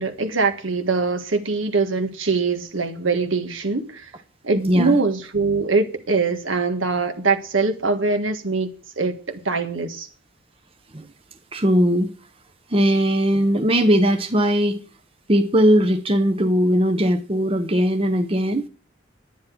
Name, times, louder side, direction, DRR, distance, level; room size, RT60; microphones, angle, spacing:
voice 1, 0.0-4.1 4.4-10.1, right 4 dB, 75° right, 1.6 m, -23 dB
voice 2, 4.5-5.0 10.9-11.0 11.5-12.1 12.7-14.8 15.3-18.7, equal, 25° right, 0.8 m, -19 dB
10.5 x 9.9 x 6.0 m
head